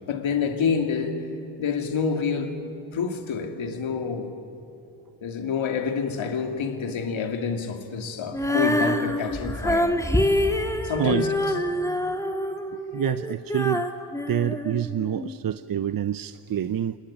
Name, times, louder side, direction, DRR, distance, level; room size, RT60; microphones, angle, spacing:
voice 1, 0.1-1.2 1.6-2.6 2.9-4.3 5.2-10.0 10.8-11.3, left 6 dB, 70° left, 2.9 m, -27 dB
Female singing, 8.3-15.4, left 1 dB, 5° left, 2.4 m, -26 dB
voice 2, 12.7-13.8 14.3-17.0, right 10 dB, 45° right, 0.7 m, -27 dB
27.0 x 21.5 x 9.9 m
cardioid pair, 70°, 49 cm